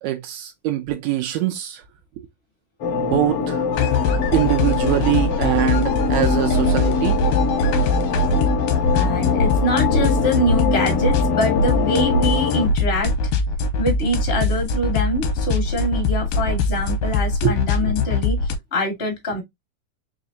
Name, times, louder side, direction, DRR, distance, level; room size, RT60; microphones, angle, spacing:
voice 1, 0.0-1.8 2.2-2.3 3.0-3.7 4.3-7.4 17.4-17.5, right 13 dB, 80° right, 1.6 m, -23 dB
sound 1, 2.8-12.7, left 6 dB, 60° left, 1.6 m, -23 dB
sound 2, 3.7-18.6, left 3 dB, 80° left, 2.2 m, -21 dB
voice 2, 8.9-13.1 13.8-19.4, equal, 35° left, 0.8 m, -24 dB
5.0 x 3.1 x 2.7 m
omnidirectional pair, 3.7 m